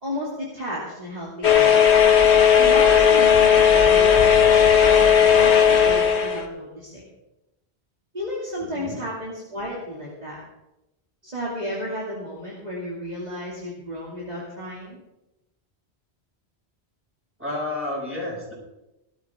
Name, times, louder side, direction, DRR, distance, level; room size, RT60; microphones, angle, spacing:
voice 1, 0.0-1.7 2.6-4.5 4.8-7.0 8.1-10.4 11.2-15.0, equal, 40° right, -6 dB, 2.9 m, -32 dB
sound 1, 1.4-6.4, left 8 dB, 85° left, 1.6 m, -15 dB
voice 2, 17.4-18.5, left 1 dB, 10° right, -5 dB, 7.0 m, -30 dB
18.0 x 13.0 x 3.8 m, 0.95 s
omnidirectional pair, 1.1 m